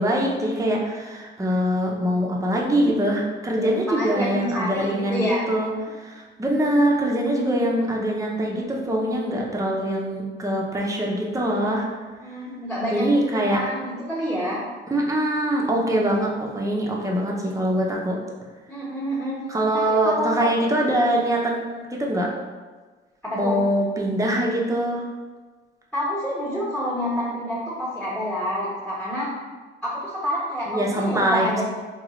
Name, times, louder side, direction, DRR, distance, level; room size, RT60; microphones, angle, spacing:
voice 1, 0.0-11.9 12.9-13.6 14.9-18.2 19.5-22.3 23.4-25.0 30.7-31.6, right 1 dB, 15° right, -2 dB, 0.7 m, -23 dB
voice 2, 3.6-5.4 12.2-13.1 13.3-14.6 18.7-19.4 19.7-20.5 23.2-23.6 25.9-29.3 29.8-31.6, equal, 5° left, -9 dB, 1.1 m, -28 dB
3.7 x 2.4 x 3.0 m, 1.4 s
cardioid pair, 90°, 20 cm